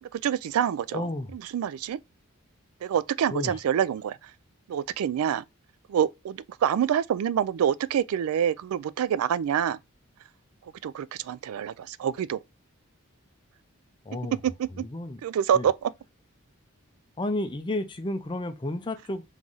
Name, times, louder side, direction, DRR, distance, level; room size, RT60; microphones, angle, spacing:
voice 1, 0.0-2.0 2.8-4.3 4.7-5.5 5.9-9.8 10.6-12.4 14.4-14.8 15.2-15.9, right 9 dB, 85° right, 0.3 m, -27 dB
voice 2, 0.9-1.3 3.3-3.6 14.0-14.4 14.8-15.2 15.5-15.7 17.2-19.2, left 1 dB, 20° left, 0.5 m, -31 dB
3.8 x 3.0 x 3.8 m
head